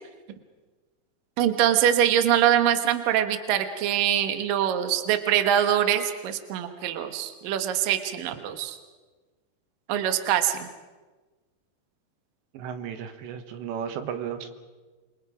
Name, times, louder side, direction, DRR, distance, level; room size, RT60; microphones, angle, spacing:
voice 1, 1.4-8.8 9.9-10.7, right 10 dB, 65° right, 9 dB, 2.6 m, -23 dB
voice 2, 12.5-14.5, right 8 dB, 85° right, 9 dB, 3.5 m, -34 dB
28.0 x 23.0 x 5.1 m, 1.3 s
omnidirectional pair, 5.0 m